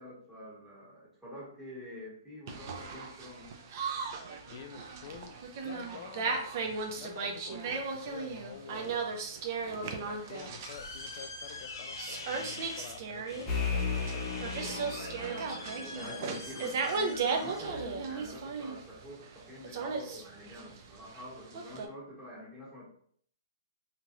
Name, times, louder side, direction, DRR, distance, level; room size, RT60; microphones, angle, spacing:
voice 1, 0.0-3.5 14.2-22.9, equal, 10° right, -7 dB, 1.5 m, -47 dB
sound 1, 2.5-21.9, right 4 dB, 45° right, 0.5 m, -36 dB
voice 2, 4.5-9.2 10.0-14.4 15.9-16.2 21.5-21.7, left 8 dB, 50° left, 8 dB, 0.3 m, -49 dB
sound 2, 10.0-19.1, left 3 dB, 80° left, 0.7 m, -46 dB
sound 3, 13.4-16.9, left 5 dB, 20° left, 0.7 m, -36 dB
2.9 x 2.8 x 2.5 m, 0.62 s
hypercardioid pair, 135°, 2 cm